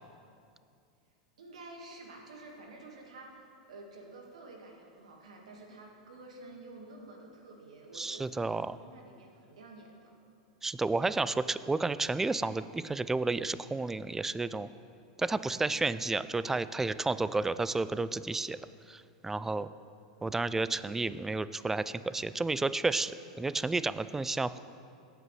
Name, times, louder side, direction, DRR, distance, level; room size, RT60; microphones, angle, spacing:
voice 1, 1.4-10.2, right 2 dB, 85° right, 0 dB, 1.7 m, -50 dB
voice 2, 7.9-8.8 10.6-14.7 15.2-18.6 18.9-19.7 20.2-24.6, right 3 dB, 10° right, 15 dB, 0.3 m, -31 dB
17.5 x 8.1 x 3.2 m, 2.4 s
hypercardioid pair, 105°, 4 cm